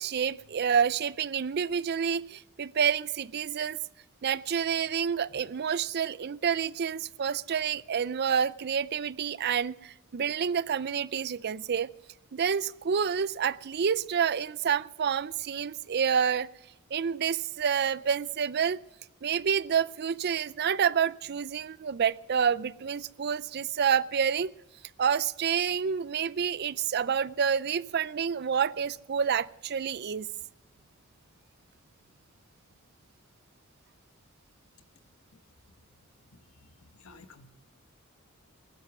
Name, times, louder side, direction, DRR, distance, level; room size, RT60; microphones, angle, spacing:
voice 1, 0.0-3.8 4.2-11.9 12.3-16.5 16.9-18.8 19.2-24.5 25.0-30.3, right 7 dB, 50° right, 0.4 m, -28 dB
voice 2, 35.9-37.5, left 3 dB, 80° left, 1.2 m, -56 dB
15.5 x 12.0 x 6.1 m
head